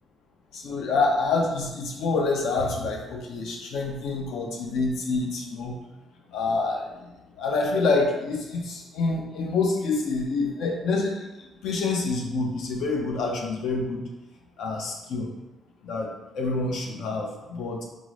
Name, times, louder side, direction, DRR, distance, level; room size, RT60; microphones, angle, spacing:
voice 1, 0.5-5.8 6.3-6.9 7.4-14.0 14.6-15.3 15.8-17.8, left 3 dB, 70° left, 1 dB, 0.6 m, -27 dB
3.7 x 2.0 x 3.1 m, 1.0 s
cardioid pair, 135°, 0 cm